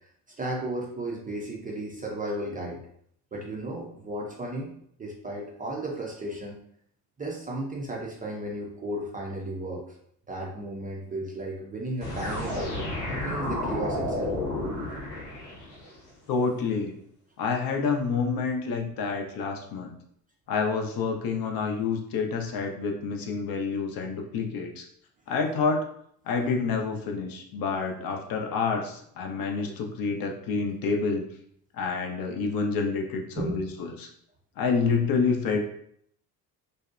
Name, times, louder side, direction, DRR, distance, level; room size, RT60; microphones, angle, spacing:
voice 1, 0.4-2.8 3.3-4.7 5.0-6.6 7.2-9.8 10.3-14.3 33.4-33.6, right 1 dB, 20° right, -2 dB, 0.4 m, -34 dB
sound 1, 12.0-15.9, left 1 dB, 80° left, 0.9 m, -31 dB
voice 2, 16.3-17.0 17.4-20.0 20.5-24.9 25.3-25.8 26.3-31.3 31.7-34.1 34.6-35.6, left 5 dB, 50° left, 3 dB, 0.5 m, -28 dB
2.6 x 2.1 x 2.4 m, 0.68 s
hypercardioid pair, 60°, 47 cm